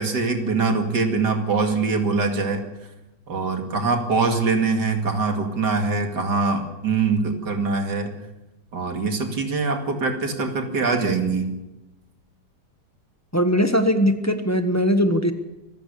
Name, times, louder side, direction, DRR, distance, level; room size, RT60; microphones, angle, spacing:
voice 1, 0.0-2.6 3.3-8.1 8.7-11.6, right 4 dB, 75° right, 5 dB, 2.9 m, -23 dB
voice 2, 13.3-15.3, equal, 10° left, 7 dB, 1.1 m, -20 dB
25.0 x 15.0 x 7.0 m, 0.97 s
omnidirectional pair, 1.8 m